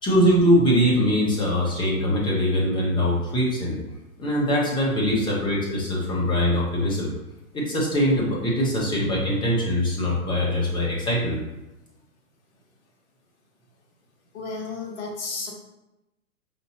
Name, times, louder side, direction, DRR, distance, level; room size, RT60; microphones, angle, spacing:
voice 1, 0.0-3.8 4.2-7.1 7.5-11.4, equal, 10° left, -4 dB, 0.8 m, -22 dB
voice 2, 14.3-15.5, left 4 dB, 50° left, -1 dB, 1.3 m, -32 dB
5.1 x 2.7 x 2.9 m, 0.95 s
hypercardioid pair, 120°, 44 cm